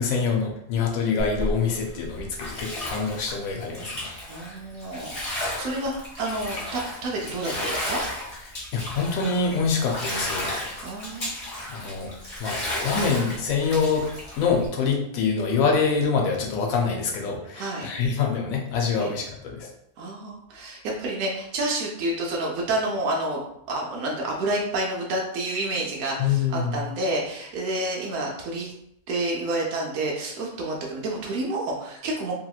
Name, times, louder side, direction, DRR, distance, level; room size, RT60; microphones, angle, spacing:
voice 1, 0.0-4.1 8.7-10.9 11.7-14.1 14.4-19.7 26.2-26.8, left 5 dB, 70° left, 1 dB, 1.0 m, -25 dB
Bathtub (filling or washing), 1.2-14.7, left 1 dB, 40° left, 1.1 m, -33 dB
voice 2, 4.3-5.9 6.2-8.0 10.8-11.4 17.5-17.9 19.0-19.1 20.0-23.4 23.7-28.7 29.1-32.3, right 2 dB, 70° right, -2 dB, 1.0 m, -29 dB
2.9 x 2.8 x 2.3 m, 0.76 s
omnidirectional pair, 1.6 m